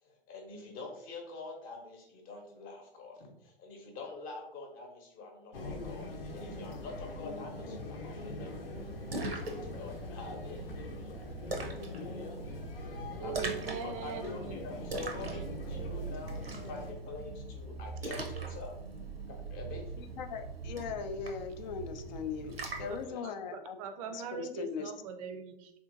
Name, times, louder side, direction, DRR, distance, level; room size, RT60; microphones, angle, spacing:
voice 1, 0.0-8.7 9.2-11.3 13.2-18.8 19.3-19.9 22.8-23.6, left 3 dB, 30° left, 2 dB, 0.8 m, -46 dB
sound 1, 5.5-16.9, left 2 dB, 75° left, 0.8 m, -42 dB
Splash splatter, 8.8-23.0, right 3 dB, 85° right, 0.7 m, -41 dB
voice 2, 12.1-12.6 20.2-23.8 24.6-24.9, left 6 dB, 50° left, 8 dB, 0.4 m, -40 dB
voice 3, 13.2-14.6 16.4-16.5 17.2-17.3 19.0-19.3 23.2-25.7, right 6 dB, 40° right, 8 dB, 0.4 m, -41 dB
3.6 x 2.8 x 2.5 m, 0.79 s
figure-of-eight pair, 105°, 29 cm